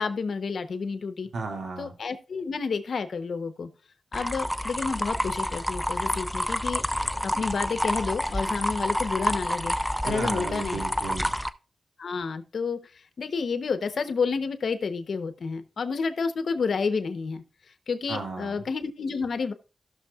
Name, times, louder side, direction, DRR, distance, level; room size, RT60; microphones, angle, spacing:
voice 1, 0.0-1.3 1.8-3.7 4.1-6.8 7.2-9.7 10.0-10.8 12.0-12.8 13.2-17.4 17.9-19.5, left 5 dB, 80° left, 10 dB, 0.8 m, -30 dB
voice 2, 1.3-1.9 10.0-11.3 18.1-18.6, right 3 dB, 90° right, 2 dB, 2.1 m, -34 dB
sound 1, 4.1-11.5, equal, ahead, 0.5 m, -28 dB
16.5 x 6.3 x 2.4 m, 0.34 s
wide cardioid pair, 80°, 0 cm